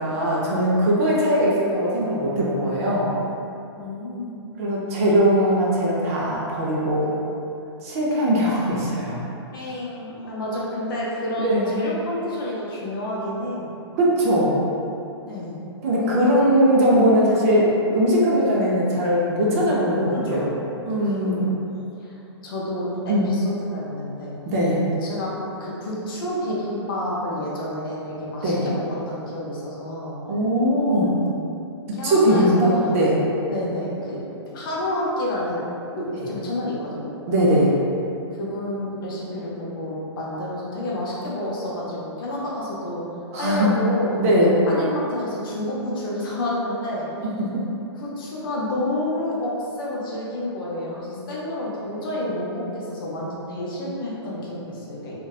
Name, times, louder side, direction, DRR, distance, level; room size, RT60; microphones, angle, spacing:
voice 1, 0.0-3.1 4.6-7.2 7.8-9.2 11.4-11.7 14.0-14.7 15.8-20.4 20.9-21.5 23.1-23.3 24.5-24.8 28.4-28.6 30.3-31.2 32.0-33.2 37.3-37.7 43.3-43.7 44.2-44.6 47.2-47.6, equal, 30° right, -5 dB, 0.4 m, -20 dB
voice 2, 3.7-4.5 9.5-13.6 15.3-15.6 19.9-21.6 22.0-22.2 22.4-24.3 25.0-25.3 25.6-30.2 31.9-32.9 33.5-34.2 34.5-35.6 35.9-37.1 38.4-43.0 43.4-44.2 44.7-47.1 47.9-55.1, left 1 dB, 50° left, -5 dB, 0.6 m, -29 dB
2.7 x 2.1 x 2.3 m, 2.7 s
hypercardioid pair, 155°, 15 cm